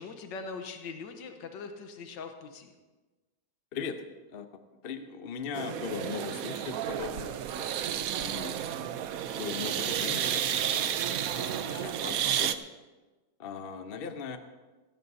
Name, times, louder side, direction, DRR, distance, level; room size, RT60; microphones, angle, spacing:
voice 1, 0.0-2.7 11.6-11.8, left 4 dB, 80° left, 6 dB, 1.7 m, -42 dB
voice 2, 3.7-4.0 4.3-4.5 4.8-7.7 8.0-8.6 9.2-12.6 13.4-14.4, left 6 dB, 45° left, 8 dB, 0.8 m, -39 dB
sound 1, 5.5-12.5, right 10 dB, 65° right, 0.9 m, -31 dB
18.0 x 16.0 x 2.8 m, 1.2 s
omnidirectional pair, 2.0 m